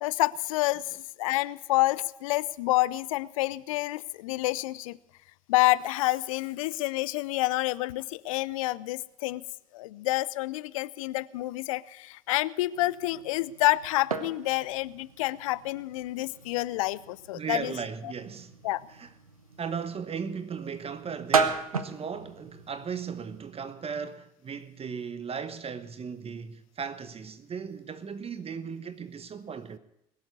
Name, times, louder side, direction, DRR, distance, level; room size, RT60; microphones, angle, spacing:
voice 1, 0.0-5.0 5.5-9.4 9.7-17.7 18.6-18.9, left 18 dB, 70° left, 0.5 m, -28 dB
sound 1, 12.7-23.4, right 5 dB, 90° right, 0.9 m, -35 dB
voice 2, 17.3-18.5 18.9-19.1 19.6-29.8, right 6 dB, 35° right, 1.1 m, -37 dB
21.0 x 7.3 x 8.1 m
figure-of-eight pair, 55°, 18 cm